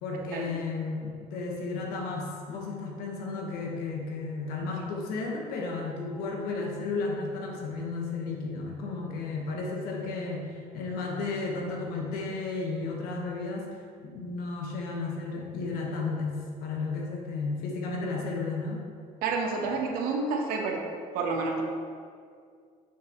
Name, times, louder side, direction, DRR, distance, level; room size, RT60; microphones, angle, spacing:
voice 1, 0.0-13.7 14.0-18.8, left 3 dB, 85° left, 0 dB, 1.2 m, -33 dB
voice 2, 19.2-20.8 21.1-21.6, right 4 dB, 80° right, 1 dB, 1.0 m, -29 dB
6.9 x 6.2 x 3.0 m, 2.2 s
cardioid pair, 160°, 15 cm